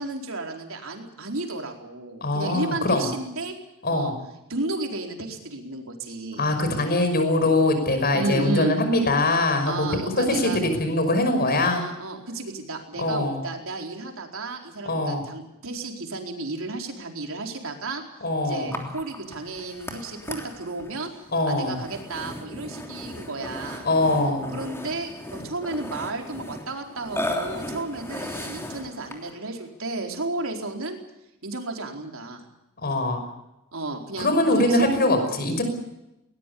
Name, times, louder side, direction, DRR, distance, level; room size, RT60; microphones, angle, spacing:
voice 1, 0.0-3.6 3.9-4.1 4.5-6.6 8.1-8.8 9.7-10.6 11.7-18.0 18.4-21.1 21.5-23.9 24.5-31.0 31.4-32.4 33.7-34.9, right 2 dB, 65° right, 3 dB, 4.4 m, -32 dB
voice 2, 2.2-3.0 3.8-4.1 6.4-11.8 13.0-13.4 14.8-15.2 18.2-18.7 21.3-21.8 23.8-24.5 32.8-33.2 34.2-35.6, left 2 dB, 45° left, 7 dB, 5.7 m, -22 dB
Burping eructation, 18.7-29.4, left 1 dB, 10° left, 3.2 m, -36 dB
20.5 x 20.0 x 8.6 m, 0.90 s
head